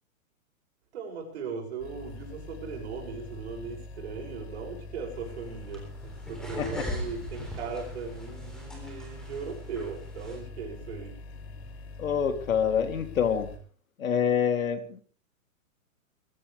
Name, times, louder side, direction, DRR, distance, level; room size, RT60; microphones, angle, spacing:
voice 1, 0.9-11.2, right 5 dB, 50° right, 1 dB, 7.4 m, -38 dB
sound 1, 1.8-13.6, left 3 dB, 50° left, 3.3 m, -44 dB
sound 2, 5.1-10.4, equal, ahead, 3.4 m, -40 dB
voice 2, 12.0-13.5 14.0-15.0, left 7 dB, 75° left, 6 dB, 3.4 m, -26 dB
22.5 x 15.0 x 3.6 m, 0.41 s
hypercardioid pair, 170°, 41 cm